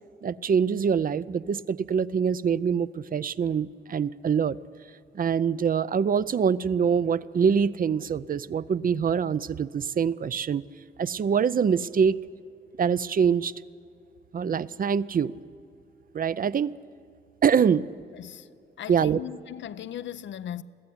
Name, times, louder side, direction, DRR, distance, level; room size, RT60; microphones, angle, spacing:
voice 1, 0.2-4.6 5.1-10.6 11.0-12.2 12.8-13.5 14.3-15.3 16.1-16.7 17.4-17.9 18.9-19.2, right 7 dB, 50° right, 0.5 m, -24 dB
voice 2, 18.1-20.6, left 10 dB, 85° left, 0.6 m, -38 dB
22.5 x 15.5 x 9.8 m
wide cardioid pair, 120°, 19 cm